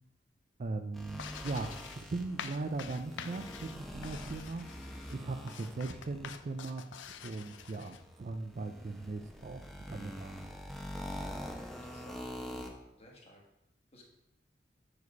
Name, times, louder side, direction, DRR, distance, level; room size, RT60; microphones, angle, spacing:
voice 1, 0.6-4.6 5.1-6.8 7.2-10.5, right 3 dB, 40° right, 8 dB, 0.4 m, -39 dB
sound 1, 0.9-12.7, equal, ahead, 0.9 m, -45 dB
sound 2, 1.2-8.0, left 7 dB, 75° left, 0.5 m, -47 dB
voice 2, 11.7-12.3 13.0-13.4 13.9-14.0, left 1 dB, 35° left, -1 dB, 1.6 m, -57 dB
6.2 x 4.9 x 5.3 m, 0.85 s
head